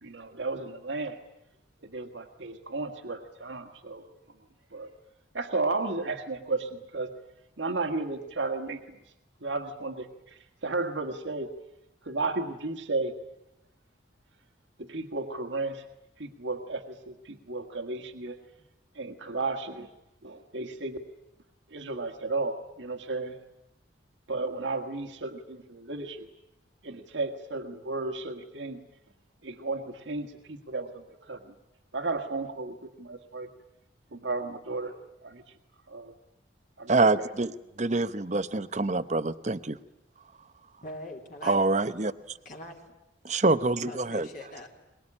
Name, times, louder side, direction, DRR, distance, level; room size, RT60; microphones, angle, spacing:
voice 1, 0.0-1.2 1.8-4.0 4.7-4.9 5.3-7.1 7.6-9.0 9.4-11.5 12.0-13.1 14.8-15.8 16.2-18.4 18.9-19.9 20.2-21.0 21.7-23.4 24.3-26.3 26.8-28.8 29.4-31.4 31.9-33.5 34.1-34.9 35.2-35.4 35.9-36.1 36.8-37.3, right 3 dB, 75° right, 5 dB, 1.7 m, -33 dB
voice 2, 36.9-37.5 37.8-39.8 41.4-42.1 43.2-44.3, right 3 dB, 40° right, 13 dB, 0.8 m, -25 dB
voice 3, 40.8-41.6 42.4-42.8 43.9-44.7, left 1 dB, 45° left, 0 dB, 3.2 m, -42 dB
23.0 x 21.0 x 9.9 m, 0.90 s
head